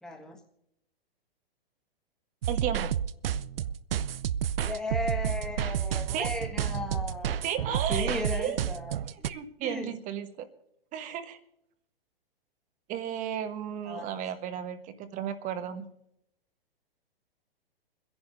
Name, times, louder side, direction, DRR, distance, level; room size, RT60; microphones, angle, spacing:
voice 1, 0.0-0.4 4.7-9.0 9.3-10.0 13.9-14.0, left 2 dB, ahead, 1 dB, 1.8 m, -36 dB
sound 1, 2.4-9.3, right 9 dB, 75° right, 0.5 m, -30 dB
voice 2, 2.5-2.9 6.1-6.3 7.4-8.6 9.1-10.5 10.9-11.4 12.9-15.9, right 9 dB, 25° right, 10 dB, 1.1 m, -34 dB
29.5 x 11.0 x 2.6 m, 0.76 s
hypercardioid pair, 125°, 30 cm